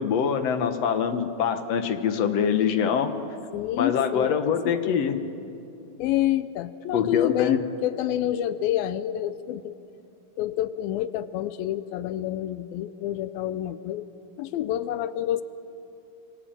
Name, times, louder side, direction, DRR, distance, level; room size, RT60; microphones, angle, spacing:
voice 1, 0.0-3.1 3.8-5.2 6.9-7.6, left 7 dB, 60° left, 8 dB, 1.9 m, -24 dB
voice 2, 3.5-5.0 6.0-9.8 10.4-14.1 14.4-15.4, left 12 dB, 85° left, 14 dB, 2.6 m, -28 dB
27.5 x 24.0 x 8.9 m, 2.7 s
omnidirectional pair, 4.1 m